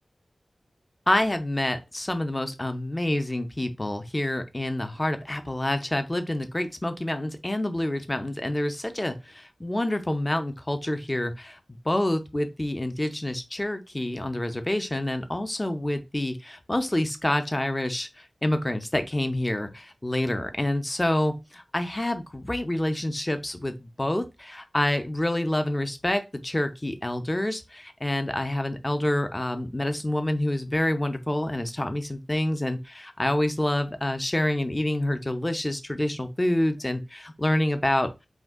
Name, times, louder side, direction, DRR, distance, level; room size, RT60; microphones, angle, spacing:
voice 1, 1.1-11.6 11.9-18.1 18.4-38.1, left 1 dB, 20° left, 0.4 m, -27 dB
2.5 x 2.1 x 3.5 m
wide cardioid pair, 80°, 0 cm